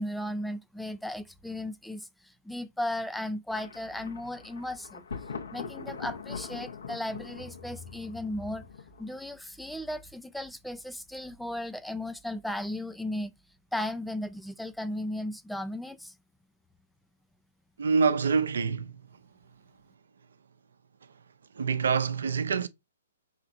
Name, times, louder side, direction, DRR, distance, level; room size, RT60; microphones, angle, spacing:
voice 1, 0.0-5.0 5.5-8.6 9.0-13.3 13.7-16.2, left 1 dB, ahead, 0.4 m, -36 dB
Thunder, 3.5-9.3, left 5 dB, 70° left, 1.0 m, -42 dB
voice 2, 17.8-19.2 21.0-21.2 21.5-22.7, right 5 dB, 65° right, 0.7 m, -27 dB
5.8 x 2.9 x 2.7 m
figure-of-eight pair, 125°, 0 cm